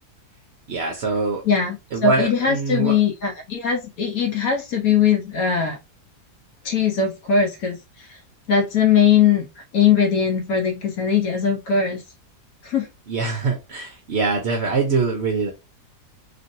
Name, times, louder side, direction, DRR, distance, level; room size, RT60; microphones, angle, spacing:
voice 1, 0.7-1.4 1.9-3.0 13.1-15.5, right 4 dB, 60° right, 2 dB, 0.7 m, -23 dB
voice 2, 1.5-5.8 6.6-8.2 8.5-9.5 9.7-12.0 12.6-12.9, left 7 dB, 65° left, 2 dB, 1.1 m, -20 dB
3.0 x 2.8 x 2.6 m, 0.24 s
omnidirectional pair, 1.7 m